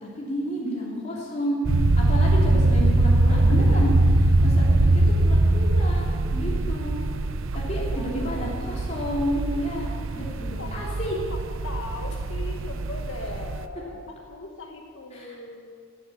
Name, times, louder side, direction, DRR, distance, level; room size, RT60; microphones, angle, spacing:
voice 1, 0.0-1.6 2.0-7.0 7.5-11.2 15.1-15.4, equal, 35° left, -5 dB, 3.3 m, -31 dB
sound 1, 1.6-13.6, right 2 dB, 75° right, 0.7 m, -22 dB
voice 2, 7.6-8.5 10.6-10.8 11.3-15.7, left 3 dB, 70° left, 2 dB, 1.4 m, -40 dB
16.0 x 9.0 x 8.7 m, 2.2 s
head